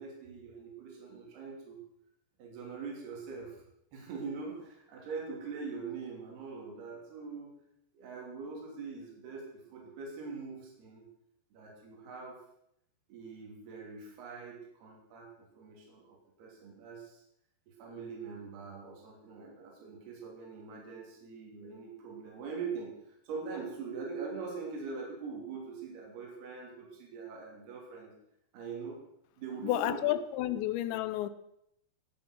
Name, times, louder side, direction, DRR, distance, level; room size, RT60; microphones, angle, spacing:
voice 1, 0.0-1.8 2.4-3.6 3.9-7.6 7.9-11.1 11.5-12.4 13.1-17.2 17.7-28.1 28.5-29.0 29.4-30.1, right 5 dB, 65° right, -1 dB, 4.9 m, -43 dB
voice 2, 29.6-31.3, left 14 dB, 90° left, 14 dB, 3.1 m, -31 dB
19.0 x 7.4 x 6.5 m, 0.76 s
omnidirectional pair, 5.1 m